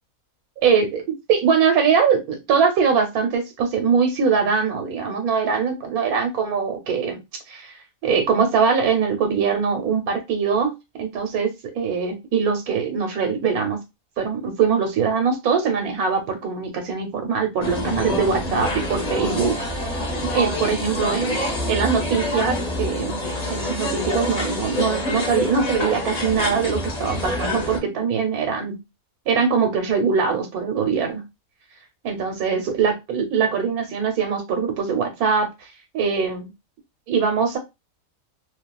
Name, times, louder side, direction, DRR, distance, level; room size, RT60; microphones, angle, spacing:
voice 1, 0.6-1.0 1.3-7.2 7.5-7.7 8.0-13.8 14.2-19.9 20.2-21.4 21.7-23.2 23.5-28.8 29.3-31.3 32.0-35.5 35.9-36.5 37.1-37.6, right 6 dB, 85° right, 5 dB, 1.3 m, -22 dB
sound 1, 17.6-27.8, left 1 dB, 40° left, 0.6 m, -27 dB
2.7 x 2.3 x 2.3 m, 0.23 s
omnidirectional pair, 1.5 m